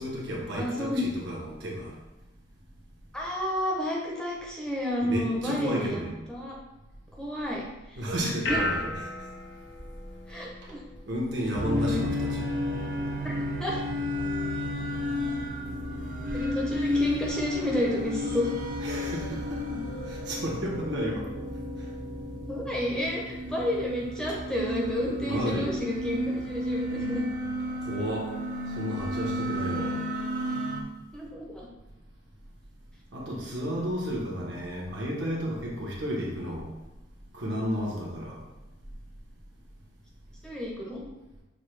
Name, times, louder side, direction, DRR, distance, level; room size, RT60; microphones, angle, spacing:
voice 1, 0.0-1.9 5.0-6.2 8.0-9.1 11.1-12.4 18.8-21.3 24.3-24.4 25.3-25.7 27.8-28.3 28.8-30.0 33.1-36.7 37.3-38.4, equal, 70° right, -3 dB, 1.1 m, -32 dB
voice 2, 0.5-1.1 3.1-6.0 6.3-6.5 7.2-7.6 8.2-8.6 10.3-10.8 11.7-12.0 13.2-13.3 13.6-13.8 16.3-18.5 22.5-27.2 29.8-29.9 31.1-31.7 40.4-41.1, left 1 dB, 5° left, -3 dB, 0.6 m, -31 dB
sound 1, 7.4-21.0, left 1 dB, 60° left, 0.5 m, -40 dB
sound 2, 11.5-30.8, left 1 dB, 40° right, 0.5 m, -32 dB
6.5 x 2.2 x 3.2 m, 1.0 s
head